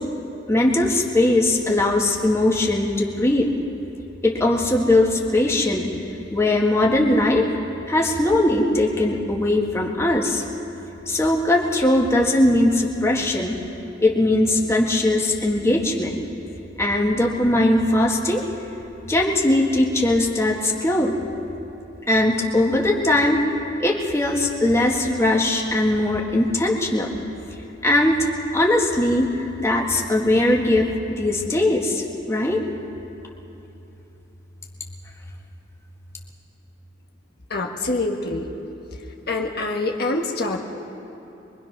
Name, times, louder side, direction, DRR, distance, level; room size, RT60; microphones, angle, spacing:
voice 1, 0.5-3.5 4.2-5.9 6.3-7.5 7.9-10.4 11.1-13.6 14.0-16.2 16.8-18.4 19.1-21.2 22.1-23.4 23.8-27.1 27.8-32.6, left 1 dB, 15° left, -1 dB, 1.8 m, -20 dB
voice 2, 37.5-38.5 39.3-40.6, left 2 dB, 55° left, 1 dB, 1.5 m, -25 dB
23.5 x 23.0 x 6.0 m, 3.0 s
head